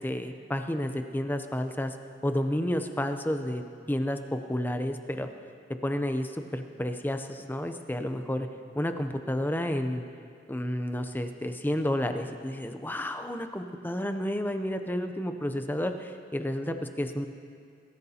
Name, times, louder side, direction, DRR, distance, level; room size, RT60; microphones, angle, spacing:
voice 1, 0.0-1.9 2.2-3.6 3.9-5.3 5.8-8.5 8.7-10.0 10.5-17.3, left 1 dB, 10° left, 7 dB, 0.6 m, -31 dB
21.5 x 13.5 x 2.8 m, 2.4 s
head